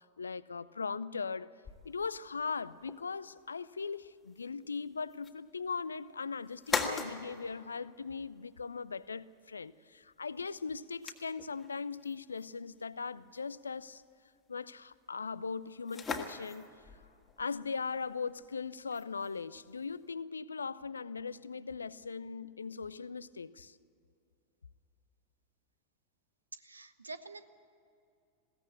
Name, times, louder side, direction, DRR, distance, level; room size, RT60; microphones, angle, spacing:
voice 1, 0.0-14.0 14.5-16.7 17.4-23.8, left 5 dB, 75° left, 0.5 m, -39 dB
sound 1, 1.6-20.1, left 5 dB, 20° left, 1.9 m, -44 dB
voice 2, 26.5-27.5, right 3 dB, 80° right, 1.0 m, -46 dB
21.0 x 17.0 x 8.3 m
figure-of-eight pair, 90°, 0 cm